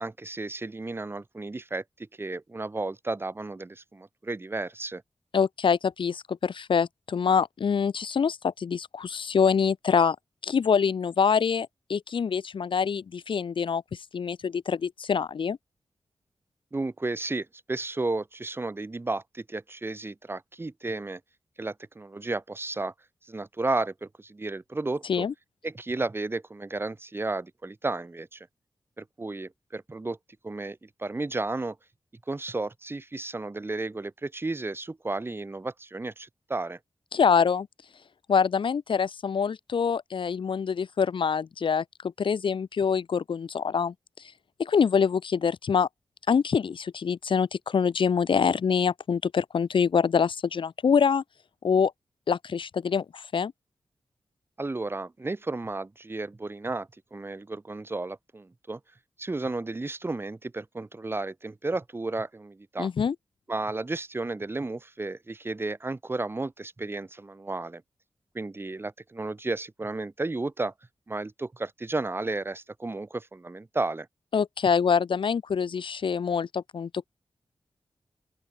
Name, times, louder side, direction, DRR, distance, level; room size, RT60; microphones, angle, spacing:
voice 1, 0.0-5.0 16.7-21.2 21.6-22.9 23.2-25.3 25.6-28.5 29.0-30.2 30.4-31.8 32.3-36.8 54.6-58.8 59.2-62.9 63.5-67.8 68.3-70.7 71.1-74.1, right 2 dB, 25° right, 3.4 m, -33 dB
voice 2, 5.3-10.2 10.4-13.8 14.1-15.6 25.1-25.3 37.1-37.7 38.3-41.8 42.2-43.9 44.6-45.9 46.3-51.2 51.6-51.9 52.3-53.5 62.8-63.1 74.3-77.1, left 6 dB, 70° left, 0.9 m, -25 dB
open air
wide cardioid pair, 150°, 9 cm